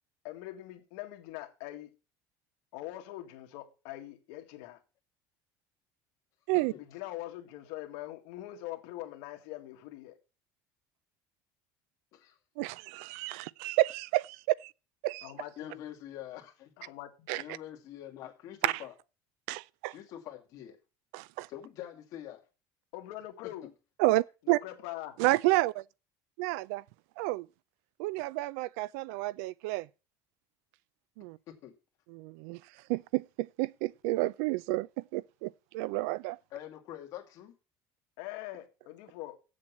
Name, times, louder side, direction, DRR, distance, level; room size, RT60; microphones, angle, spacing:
voice 1, 0.2-1.9 2.7-4.8 6.8-10.2 15.2-15.8 16.8-17.4 22.9-23.7 24.4-25.2 38.2-39.4, left 15 dB, 75° left, 2.0 m, -43 dB
voice 2, 12.6-14.7 15.0-15.3 17.3-17.4 18.6-18.7 19.5-19.9 21.1-21.5 24.0-24.6 25.2-25.8 26.4-26.8 27.2-27.5 28.0-29.9 31.2-31.4 32.1-32.6 32.9-36.4, right 20 dB, 85° right, 0.5 m, -30 dB
voice 3, 15.6-16.7 17.4-18.9 19.9-20.8 21.5-22.4 23.4-23.7 31.5-31.8 36.5-37.6, left 11 dB, 45° left, 2.4 m, -45 dB
7.9 x 7.3 x 7.3 m
cardioid pair, 175°, 8 cm